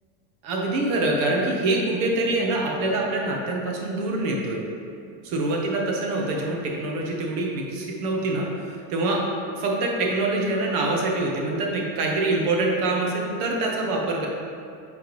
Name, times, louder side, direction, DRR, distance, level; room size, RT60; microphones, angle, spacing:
voice 1, 0.4-4.6 5.2-9.2 9.5-14.3, right 2 dB, 70° right, -1 dB, 1.2 m, -25 dB
10.0 x 3.8 x 3.1 m, 2.4 s
cardioid pair, 175°, 35 cm